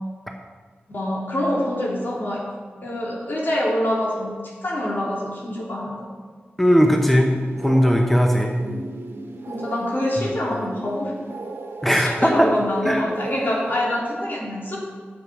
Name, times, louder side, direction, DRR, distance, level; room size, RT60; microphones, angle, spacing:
voice 1, 0.9-2.5 2.8-4.4 4.6-6.1 9.5-11.1 11.9-14.8, left 1 dB, 55° left, -3 dB, 3.0 m, -25 dB
voice 2, 6.6-7.3 7.6-8.5 11.8-12.5 12.8-13.1, equal, 5° left, 2 dB, 0.9 m, -18 dB
sound 1, 6.6-14.0, right 2 dB, 80° right, 1.1 m, -36 dB
9.2 x 7.7 x 6.1 m, 1.6 s
wide cardioid pair, 70°, 4 cm